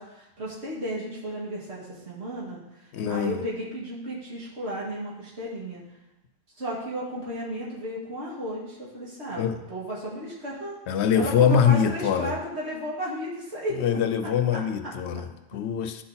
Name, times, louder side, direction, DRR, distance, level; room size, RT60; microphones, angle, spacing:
voice 1, 0.0-5.8 6.6-10.8 11.1-13.8 14.2-14.9, equal, 80° right, -6 dB, 2.3 m, -34 dB
voice 2, 2.9-3.4 9.4-9.6 10.9-12.4 13.8-16.0, left 7 dB, 80° left, 8 dB, 0.9 m, -23 dB
11.0 x 3.9 x 3.9 m, 1.0 s
omnidirectional pair, 1.1 m